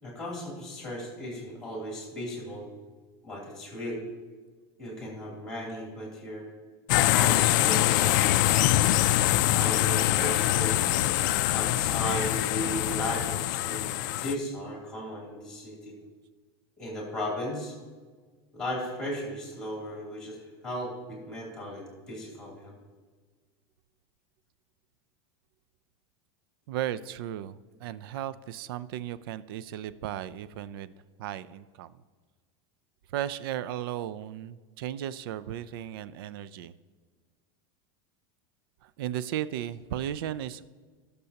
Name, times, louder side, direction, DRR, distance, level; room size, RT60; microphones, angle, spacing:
voice 1, 0.0-2.7 3.2-4.1 4.8-6.5 7.1-8.6 9.6-10.8 11.5-13.9 14.2-16.0 16.8-17.7 18.5-22.8, equal, 5° left, -3 dB, 2.9 m, -36 dB
sound 1, 6.9-14.3, left 14 dB, 50° left, 0.4 m, -24 dB
voice 2, 26.7-30.9 31.2-31.9 33.1-36.7 38.8-40.6, right 11 dB, 65° right, 16 dB, 0.4 m, -35 dB
19.5 x 6.8 x 2.9 m, 1.5 s
supercardioid pair, 180°, 13 cm